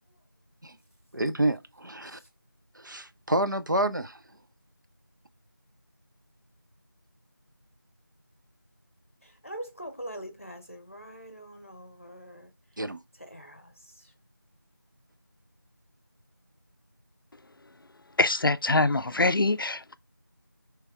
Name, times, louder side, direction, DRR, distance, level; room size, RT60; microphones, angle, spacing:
voice 1, 1.1-2.2 2.8-4.2 12.8-13.0, right 1 dB, 60° right, 0.5 m, -28 dB
voice 2, 9.2-12.5 13.2-14.1, right 1 dB, 40° left, 0.8 m, -43 dB
voice 3, 18.2-19.8, left 2 dB, 75° left, 0.4 m, -24 dB
3.3 x 3.2 x 4.7 m
figure-of-eight pair, 180°, 12 cm